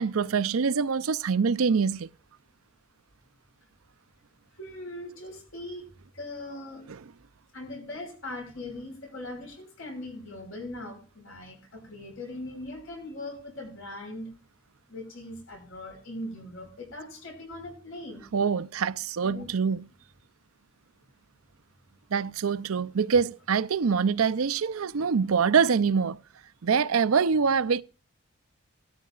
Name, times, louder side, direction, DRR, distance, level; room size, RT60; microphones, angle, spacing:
voice 1, 0.0-2.1 18.3-19.8 22.1-26.2 26.6-27.8, right 6 dB, 85° right, 0.6 m, -24 dB
voice 2, 4.6-5.9 6.1-6.8 7.5-14.3 14.9-18.3 19.2-19.5, left 1 dB, 75° left, 5.7 m, -40 dB
18.0 x 13.0 x 2.4 m
head